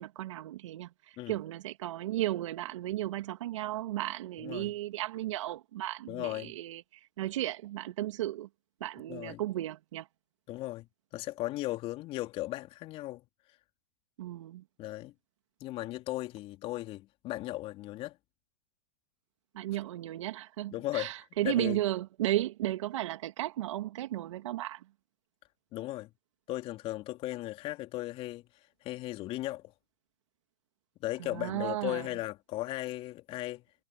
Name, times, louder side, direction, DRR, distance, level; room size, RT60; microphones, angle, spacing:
voice 1, 0.0-8.5 8.8-10.1 14.2-14.6 19.5-24.8 31.2-32.1, right 14 dB, 60° right, 2.2 m, -34 dB
voice 2, 4.4-4.7 6.1-6.5 9.1-9.4 10.5-10.9 11.1-13.2 14.8-15.1 15.6-18.2 20.7-21.1 21.4-21.8 25.7-26.1 26.5-28.5 28.8-29.6 31.0-33.6, left 17 dB, 35° left, 3.3 m, -36 dB
hypercardioid pair, 125°, 17 cm